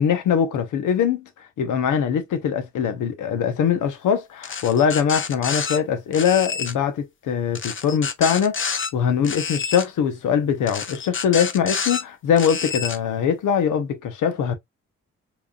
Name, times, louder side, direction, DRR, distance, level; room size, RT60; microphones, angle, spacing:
voice 1, 0.0-14.5, left 7 dB, 90° left, 1.1 m, -22 dB
sound 1, 4.4-5.8 6.1-6.7 7.5-8.9 9.2-9.9 10.7-12.0 12.4-13.0, left 6 dB, 40° left, 0.9 m, -28 dB
4.9 x 3.5 x 2.4 m
cardioid pair, 65°, 30 cm